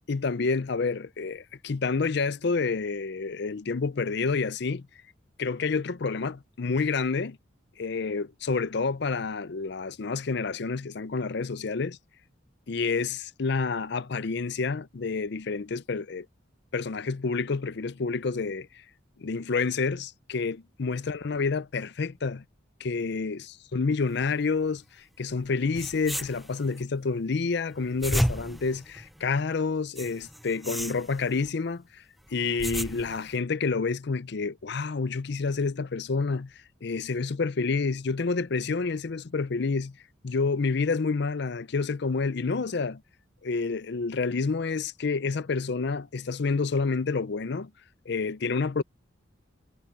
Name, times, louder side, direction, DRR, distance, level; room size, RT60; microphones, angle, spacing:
voice 1, 0.1-4.9 5.4-7.4 7.8-12.0 12.7-16.3 16.7-18.7 19.2-22.4 22.8-24.8 25.2-32.0 32.3-36.5 36.8-39.9 40.2-43.0 43.4-47.7 48.1-48.8, left 4 dB, 60° left, 0.5 m, -29 dB
sound 1, 25.4-25.5 25.7-26.8 27.7-29.4 30.0-31.5 32.3-33.4, equal, ahead, 0.4 m, -33 dB
head